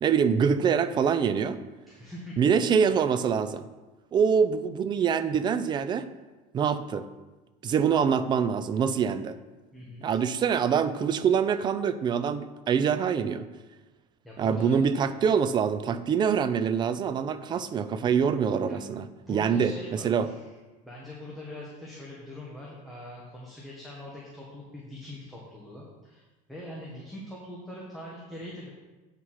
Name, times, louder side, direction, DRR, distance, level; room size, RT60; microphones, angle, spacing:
voice 1, 0.0-1.6 2.4-3.7 4.1-6.1 6.5-7.1 7.6-9.4 10.0-13.5 14.4-20.3, right 7 dB, 25° right, 13 dB, 0.4 m, -25 dB
voice 2, 1.9-2.3 9.7-10.3 14.2-14.8 17.9-18.3 18.7-18.8 19.3-20.5 20.8-28.7, left 1 dB, ahead, -5 dB, 1.3 m, -43 dB
8.4 x 4.7 x 5.7 m, 1.2 s
cardioid pair, 150°, 18 cm